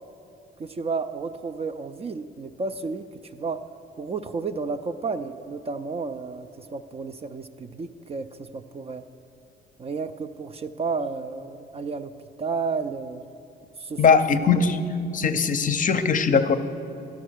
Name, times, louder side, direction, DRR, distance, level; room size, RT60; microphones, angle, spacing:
voice 1, 0.6-3.1 3.3-3.6 4.0-9.0 9.8-12.1 12.4-13.2 13.8-14.2, right 4 dB, 30° right, 9 dB, 0.4 m, -32 dB
voice 2, 14.0-14.8 15.1-16.6, left 5 dB, 40° left, 10 dB, 0.6 m, -20 dB
11.5 x 5.7 x 6.3 m, 2.6 s
cardioid pair, 90°, 20 cm